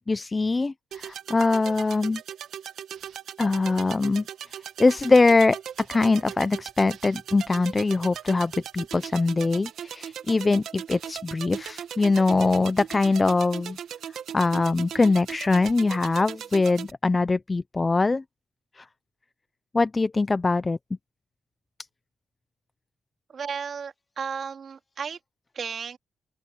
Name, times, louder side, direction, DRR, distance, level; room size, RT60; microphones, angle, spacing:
voice 1, 0.1-2.2 3.4-4.2 4.8-13.8 14.3-18.2 18.8-18.9 19.7-20.8, left 3 dB, 25° left, 0.5 m, -22 dB
sound 1, 0.9-16.9, right 9 dB, 75° right, 1.3 m, -39 dB
voice 2, 23.3-25.2 25.5-26.0, right 6 dB, 50° right, 3.2 m, -34 dB
open air
cardioid pair, 105°, 0 cm